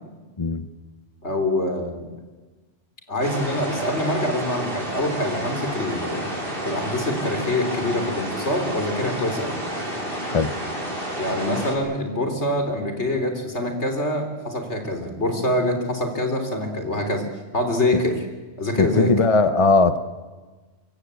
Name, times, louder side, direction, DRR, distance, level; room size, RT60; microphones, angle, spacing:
voice 1, 1.2-2.1 3.1-6.3 6.6-9.6 11.2-17.2 17.5-18.2 18.6-19.1, left 1 dB, 75° left, 5 dB, 4.1 m, -25 dB
sound 1, 3.2-11.7, right 1 dB, 50° right, 5.7 m, -30 dB
voice 2, 18.8-20.0, left 3 dB, 30° left, 11 dB, 0.9 m, -19 dB
25.0 x 22.5 x 8.4 m, 1.3 s
omnidirectional pair, 1.2 m